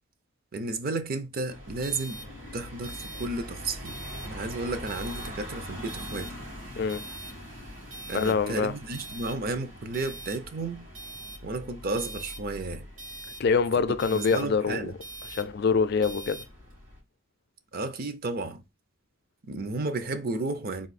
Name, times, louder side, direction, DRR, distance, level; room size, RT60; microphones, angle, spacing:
voice 1, 0.5-2.2 2.5-4.0 4.2-6.3 8.1-10.8 11.4-12.9 14.1-14.9 17.7-18.6 19.5-20.9, right 3 dB, 50° right, 0.5 m, -32 dB
sound 1, 1.5-17.0, equal, 80° right, 2.4 m, -42 dB
voice 2, 8.1-8.7 13.4-14.9 15.3-16.4, left 5 dB, 55° left, 0.4 m, -25 dB
3.7 x 2.6 x 4.1 m
head